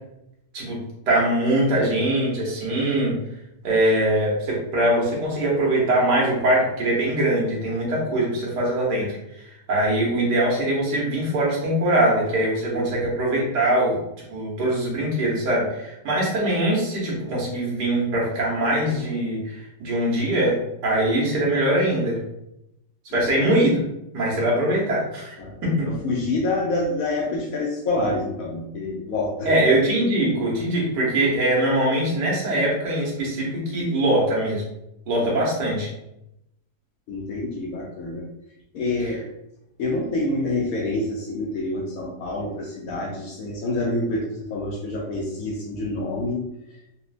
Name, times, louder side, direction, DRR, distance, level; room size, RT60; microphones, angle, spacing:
voice 1, 1.1-3.2 3.6-9.1 9.7-14.0 14.3-22.2 23.1-23.8 24.1-25.3 25.6-25.9 29.4-34.6 35.1-35.9 39.0-39.2, right 1 dB, 90° right, -4 dB, 1.6 m, -22 dB
voice 2, 12.7-13.1 23.1-23.2 25.4-29.5 37.1-38.3 38.7-39.2 39.8-46.4, left 2 dB, 70° left, -1 dB, 0.9 m, -27 dB
4.2 x 2.0 x 2.4 m, 0.86 s
omnidirectional pair, 1.8 m